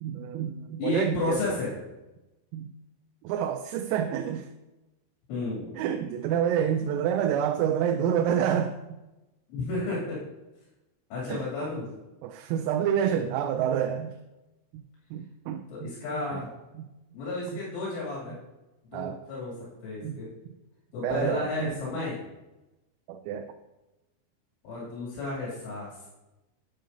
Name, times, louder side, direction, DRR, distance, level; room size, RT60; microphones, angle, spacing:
voice 1, 0.0-1.4 2.5-2.7 3.2-4.5 5.8-8.7 11.3-11.7 12.2-14.1 14.7-14.8 15.1-16.0 16.3-16.4 16.8-16.9 18.9-19.2 20.0-20.2 21.0-21.7 23.1-23.5, right 9 dB, 85° right, 6 dB, 3.3 m, -28 dB
voice 2, 0.8-1.8 5.3-5.8 9.5-10.2 11.1-11.9 15.7-16.5 17.1-18.4 18.9-19.5 19.8-20.3 20.9-22.2 24.6-26.0, left 3 dB, 70° left, -6 dB, 4.9 m, -32 dB
10.5 x 9.4 x 2.7 m, 1.0 s
omnidirectional pair, 5.9 m